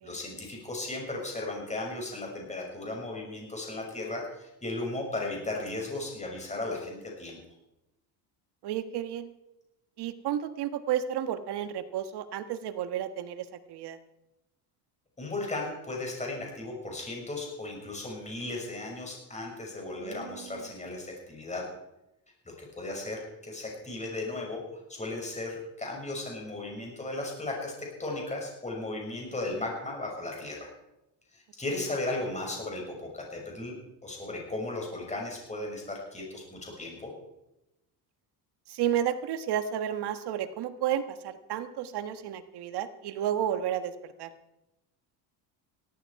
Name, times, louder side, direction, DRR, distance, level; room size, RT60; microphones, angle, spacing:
voice 1, 0.0-7.4 15.2-21.6 22.6-24.6 24.9-30.7 31.3-33.7 34.0-37.1, left 2 dB, 15° left, 0 dB, 6.2 m, -36 dB
voice 2, 8.6-9.3 10.0-14.0 19.9-20.7 38.7-44.3, right 10 dB, 60° right, 10 dB, 1.5 m, -32 dB
17.5 x 14.0 x 4.8 m, 0.92 s
cardioid pair, 105°, 44 cm